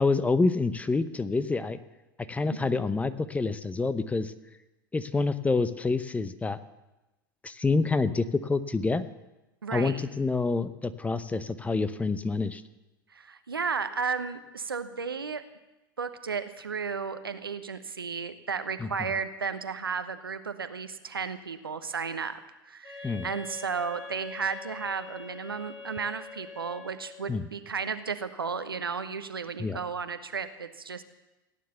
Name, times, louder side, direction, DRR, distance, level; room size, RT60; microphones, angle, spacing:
voice 1, 0.0-1.8 2.3-4.3 4.9-6.6 7.4-9.0 9.7-12.6 18.8-18.9 23.0-23.3 27.3-27.4 29.6-29.8, left 3 dB, 10° left, 13 dB, 0.8 m, -27 dB
voice 2, 2.5-2.8 9.6-10.0 13.1-15.4 16.0-31.0, right 5 dB, 85° right, 10 dB, 0.9 m, -34 dB
Wind instrument woodwind instrument, 22.8-27.3, left 4 dB, 55° left, 5.8 m, -44 dB
16.5 x 9.5 x 6.9 m, 1.0 s
figure-of-eight pair, 85°, 12 cm